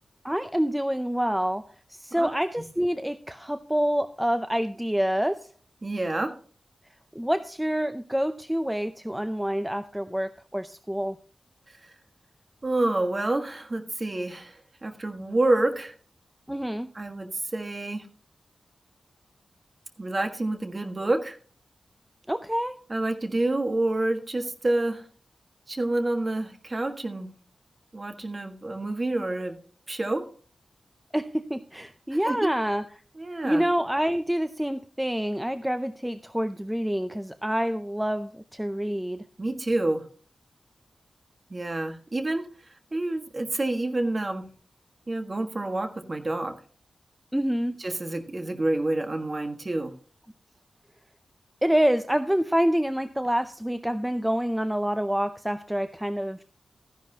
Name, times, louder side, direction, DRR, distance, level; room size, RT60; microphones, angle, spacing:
voice 1, 0.2-1.6 1.9-5.4 7.1-11.2 16.5-16.9 22.3-22.7 31.1-32.8 33.4-39.2 47.3-47.7 51.6-56.4, equal, 5° right, 9 dB, 0.5 m, -27 dB
voice 2, 5.8-6.3 12.6-14.5 14.8-15.9 16.9-18.0 20.0-21.4 22.9-25.0 25.7-27.3 27.9-29.6 29.9-30.2 32.3-32.5 33.2-33.6 39.4-40.0 41.5-42.4 42.9-44.4 45.1-46.5 47.8-49.9, right 2 dB, 30° right, 5 dB, 1.5 m, -28 dB
14.0 x 11.0 x 2.8 m, 0.41 s
wide cardioid pair, 135°, 0 cm